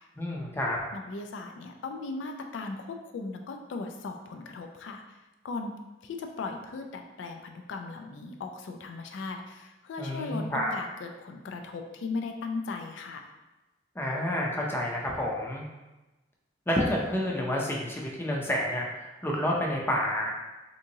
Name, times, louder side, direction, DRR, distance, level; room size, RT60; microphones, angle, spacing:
voice 1, 0.2-0.8 10.0-10.7 14.0-15.6 16.7-20.3, left 1 dB, 10° left, -2 dB, 0.5 m, -29 dB
voice 2, 0.9-5.2 5.4-5.7 6.0-13.2, left 3 dB, 75° left, 4 dB, 0.3 m, -37 dB
3.5 x 2.8 x 2.7 m, 1.1 s
head